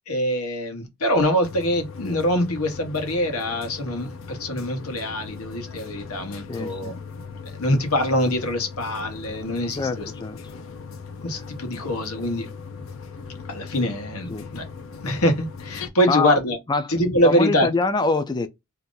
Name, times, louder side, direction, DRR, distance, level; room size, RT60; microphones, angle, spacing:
voice 1, 0.1-7.0 7.5-10.1 11.2-12.5 13.5-14.7 15.0-16.6 16.9-17.7, equal, 85° left, 1.1 m, -24 dB
sound 1, 1.4-15.9, left 5 dB, 65° left, 0.6 m, -39 dB
voice 2, 6.5-7.0 9.8-10.4 14.3-14.5 16.1-16.4 16.7-16.9 17.2-18.5, left 3 dB, 20° left, 0.4 m, -24 dB
2.8 x 2.5 x 3.7 m
head